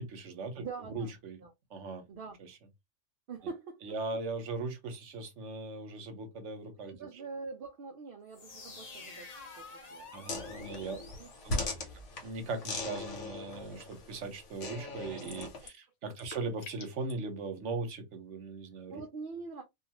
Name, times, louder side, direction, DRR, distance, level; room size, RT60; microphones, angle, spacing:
voice 1, 0.0-1.4 1.7-2.0 2.4-2.5 3.8-7.2 10.1-11.0 11.4-11.7 12.2-15.7 16.0-19.0, right 3 dB, 80° right, 1.1 m, -39 dB
voice 2, 0.5-1.1 1.4-1.5 2.1-2.4 3.3-4.0 6.9-12.0 18.9-19.6, right 4 dB, 60° right, 0.7 m, -45 dB
sound 1, 8.3-12.1, left 3 dB, 40° left, 0.7 m, -49 dB
sound 2, 10.3-15.7, left 2 dB, 85° left, 1.3 m, -39 dB
sound 3, 15.2-15.8 16.1-17.1, left 4 dB, 70° left, 0.9 m, -48 dB
2.6 x 2.4 x 2.8 m
omnidirectional pair, 1.2 m